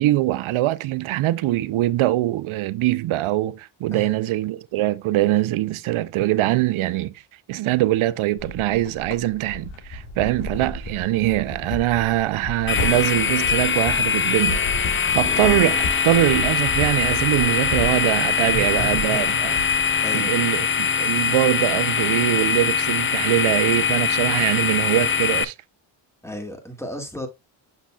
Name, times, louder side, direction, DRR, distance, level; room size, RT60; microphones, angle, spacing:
voice 1, 0.0-7.2 7.5-19.6 20.1-25.5, right 15 dB, 75° right, 0.6 m, -23 dB
voice 2, 3.9-4.2 15.2-15.5 18.4-20.6 26.2-27.3, right 1 dB, 5° left, 2.2 m, -35 dB
sound 1, 8.4-20.0, left 2 dB, 70° left, 2.5 m, -33 dB
sound 2, 12.7-25.4, left 6 dB, 25° left, 0.5 m, -22 dB
7.0 x 5.9 x 2.3 m
supercardioid pair, 55°, 50 cm